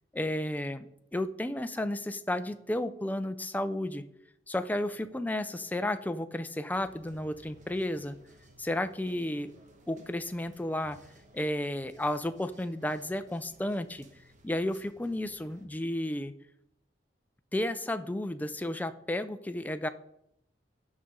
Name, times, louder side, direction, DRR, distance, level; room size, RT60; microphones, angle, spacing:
voice 1, 0.1-4.0 4.5-8.2 8.6-9.5 9.9-11.0 11.3-14.1 14.4-16.3 17.5-19.9, left 1 dB, 10° left, 10 dB, 0.4 m, -32 dB
sound 1, 6.7-15.7, right 1 dB, 45° right, 1.2 m, -59 dB
14.5 x 5.4 x 3.7 m, 0.78 s
head